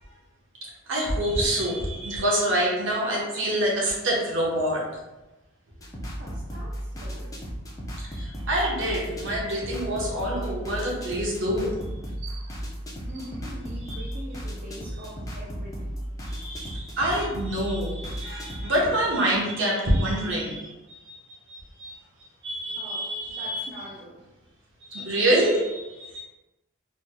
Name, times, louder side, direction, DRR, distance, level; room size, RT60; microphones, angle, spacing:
voice 1, 0.6-4.8 8.1-11.7 12.2-12.5 13.9-14.0 16.3-21.2 21.5-21.9 22.4-23.7 24.9-26.2, right 1 dB, 60° right, -4 dB, 1.1 m, -26 dB
sound 1, 5.8-18.9, equal, 15° left, 0.6 m, -35 dB
voice 2, 6.2-7.3 13.0-16.0 22.8-24.2, equal, 45° right, -6 dB, 0.6 m, -43 dB
4.1 x 3.1 x 2.2 m, 1.0 s
head